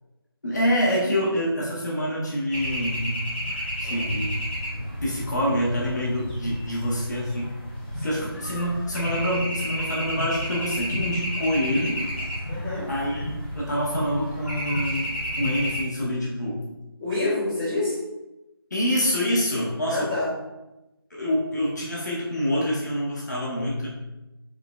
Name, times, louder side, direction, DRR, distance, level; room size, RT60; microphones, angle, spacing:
voice 1, 0.4-3.2 3.8-4.5 5.0-7.5 8.0-12.0 12.9-16.6 18.7-20.1 21.1-23.9, equal, 45° left, -5 dB, 1.3 m, -26 dB
sound 1, 2.5-15.8, equal, 25° left, 1.0 m, -31 dB
voice 2, 7.9-8.3 12.5-12.9 17.0-18.0 19.8-20.3, left 2 dB, 10° right, -15 dB, 1.2 m, -28 dB
5.1 x 3.9 x 2.4 m, 0.99 s
figure-of-eight pair, 175°, 13 cm